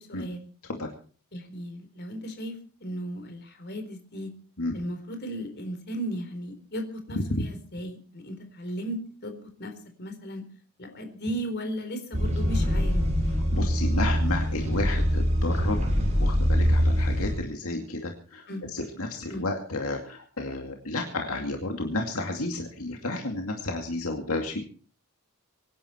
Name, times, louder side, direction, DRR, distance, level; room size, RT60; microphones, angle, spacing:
voice 1, 0.1-0.5 1.3-4.3 4.7-9.7 10.0-10.4 10.8-13.0 18.5-18.7 19.3-19.5, equal, 50° left, 6 dB, 4.0 m, -36 dB
sound 1, 12.1-17.3, equal, 30° right, 6.7 m, -24 dB
voice 2, 13.5-15.8 16.2-18.4 18.7-24.6, left 2 dB, 70° left, 2 dB, 2.4 m, -32 dB
24.5 x 11.0 x 4.4 m, 0.41 s
head